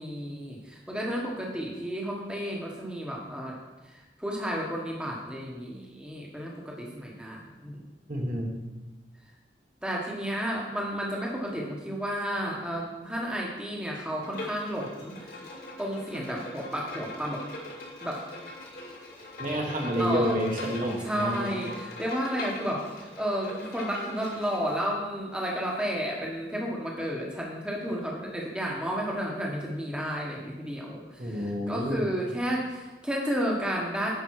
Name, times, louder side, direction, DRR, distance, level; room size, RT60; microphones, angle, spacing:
voice 1, 0.0-3.6 3.9-7.8 9.8-15.4 15.8-17.4 18.0-18.2 20.0-20.4 21.0-34.1, equal, 5° right, -2 dB, 1.2 m, -32 dB
voice 2, 8.1-8.5 19.4-21.5 31.2-32.0, equal, 50° right, 0 dB, 1.2 m, -29 dB
Bowed string instrument, 14.2-24.7, left 2 dB, 60° left, 2.2 m, -41 dB
10.0 x 5.3 x 4.7 m, 1.1 s
head